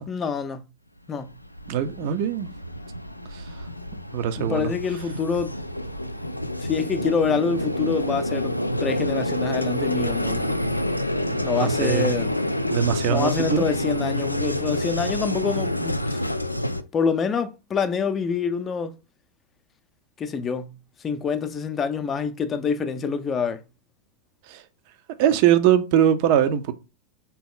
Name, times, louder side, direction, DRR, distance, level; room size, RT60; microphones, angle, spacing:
voice 1, 0.1-0.6 1.1-1.3 4.4-5.5 6.6-10.6 11.4-12.3 13.1-16.2 16.9-19.0 20.2-20.7 21.0-23.6, left 6 dB, 25° left, 0.5 m, -26 dB
Vehicle, 1.2-16.8, left 1 dB, 85° left, 0.3 m, -28 dB
voice 2, 1.7-2.5 4.1-4.7 11.3-12.1 12.7-13.6 24.5-24.6 25.2-26.7, right 10 dB, 45° right, 0.6 m, -21 dB
3.7 x 2.9 x 3.8 m
figure-of-eight pair, 90°, 0 cm